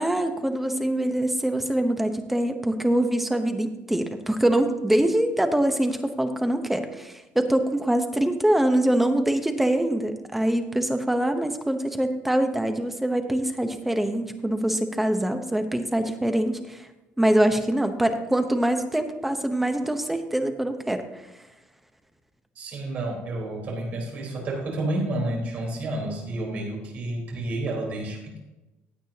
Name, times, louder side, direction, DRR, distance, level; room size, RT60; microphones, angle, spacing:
voice 1, 0.0-16.9 17.2-21.0, right 1 dB, 5° right, 6 dB, 0.8 m, -24 dB
voice 2, 22.6-28.4, right 1 dB, 40° right, -1 dB, 4.1 m, -30 dB
16.0 x 8.8 x 2.9 m, 1.0 s
cardioid pair, 160°, 4 cm